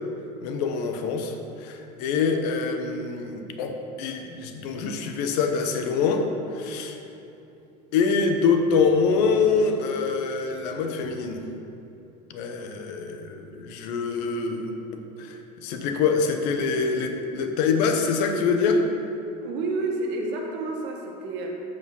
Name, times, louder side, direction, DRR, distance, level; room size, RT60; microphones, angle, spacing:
voice 1, 0.4-3.7 4.0-6.3 6.5-7.0 7.9-11.4 12.3-14.7 15.2-15.4 15.6-18.8, left 5 dB, 75° left, 5 dB, 0.9 m, -25 dB
voice 2, 19.4-21.6, right 2 dB, 60° right, 0 dB, 1.5 m, -30 dB
8.3 x 5.0 x 5.5 m, 2.8 s
supercardioid pair, 115°, 21 cm